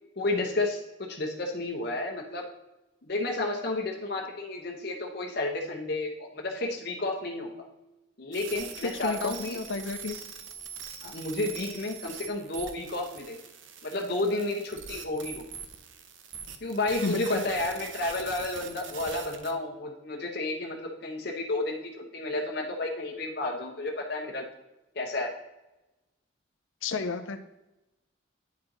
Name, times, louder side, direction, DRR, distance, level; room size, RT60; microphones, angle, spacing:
voice 1, 0.2-2.4 3.0-7.7 8.2-9.6 11.0-13.4 13.8-15.4 16.6-24.5 24.9-25.3, left 2 dB, 55° left, 0 dB, 0.9 m, -31 dB
sound 1, 8.3-19.5, right 7 dB, 75° right, 0.7 m, -43 dB
voice 2, 8.8-10.2 17.0-17.4 26.8-27.4, left 4 dB, 75° left, 9 dB, 0.5 m, -31 dB
9.3 x 4.4 x 3.8 m, 0.97 s
head